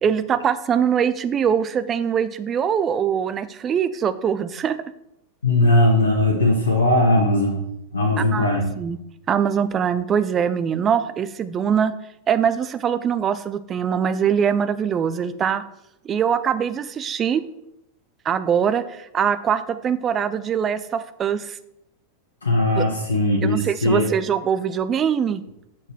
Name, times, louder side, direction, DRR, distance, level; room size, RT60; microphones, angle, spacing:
voice 1, 0.0-4.8 8.3-9.0 9.3-11.9 12.3-15.6 16.0-17.4 18.2-21.6 22.7-22.8 23.4-25.4, right 8 dB, 25° right, 13 dB, 0.5 m, -22 dB
voice 2, 5.4-7.6 7.9-8.7 22.4-24.1, left 1 dB, 75° left, -1 dB, 1.1 m, -19 dB
6.7 x 6.0 x 4.5 m, 0.81 s
figure-of-eight pair, 90°, 0 cm